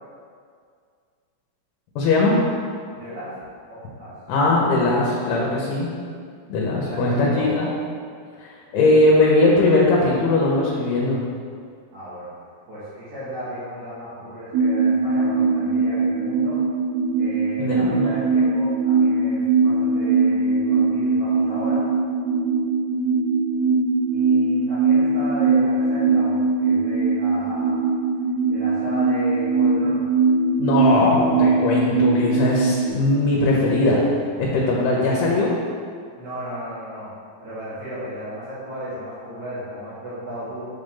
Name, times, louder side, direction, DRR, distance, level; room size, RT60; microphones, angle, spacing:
voice 1, 2.0-2.4 4.3-5.9 6.5-7.7 8.4-11.2 17.6-18.1 30.6-34.1 34.4-35.5, left 2 dB, 85° left, -4 dB, 2.7 m, -19 dB
voice 2, 2.9-3.3 3.7-4.1 6.8-7.7 11.9-12.3 12.7-16.6 17.1-21.8 24.1-27.8 28.5-30.1 36.2-37.1 37.4-40.7, equal, 55° right, -15 dB, 2.7 m, -34 dB
sound 1, 14.5-32.9, right 4 dB, 85° right, 2.7 m, -21 dB
7.2 x 3.9 x 3.7 m, 2.2 s
omnidirectional pair, 4.4 m